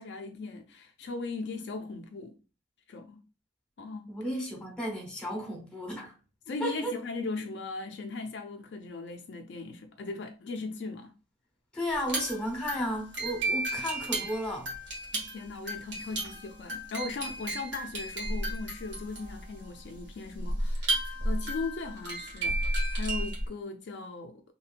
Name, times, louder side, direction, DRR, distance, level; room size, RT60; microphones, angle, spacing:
voice 1, 0.0-2.4 2.9-3.2 3.8-4.3 6.5-11.1 15.1-24.4, left 3 dB, 60° left, 0.4 m, -38 dB
voice 2, 4.1-6.1 6.6-6.9 11.7-14.7, equal, 5° left, 1.1 m, -33 dB
sound 1, 11.9-23.5, right 1 dB, 70° right, 1.4 m, -33 dB
2.8 x 2.8 x 2.4 m
head